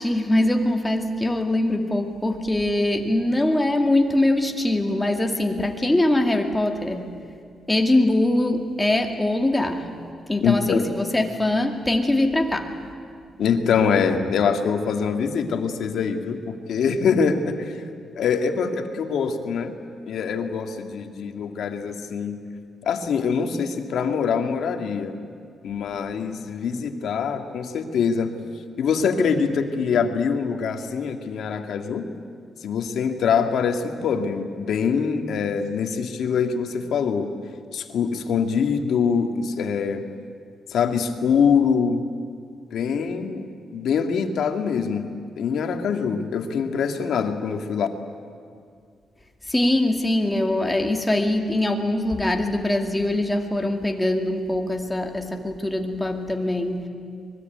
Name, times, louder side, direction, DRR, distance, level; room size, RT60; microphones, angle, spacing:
voice 1, 0.0-7.2 7.7-9.9 10.3-12.7 49.5-56.9, left 1 dB, 10° left, 3 dB, 2.2 m, -22 dB
voice 2, 10.4-10.9 13.4-17.8 18.2-19.8 20.1-22.4 22.8-25.2 25.6-28.3 28.8-32.1 32.6-37.3 37.7-40.1 40.7-42.0 42.7-45.1 45.4-47.9, left 6 dB, 70° left, 6 dB, 2.0 m, -24 dB
25.0 x 21.0 x 9.3 m, 2.2 s
cardioid pair, 145°, 0 cm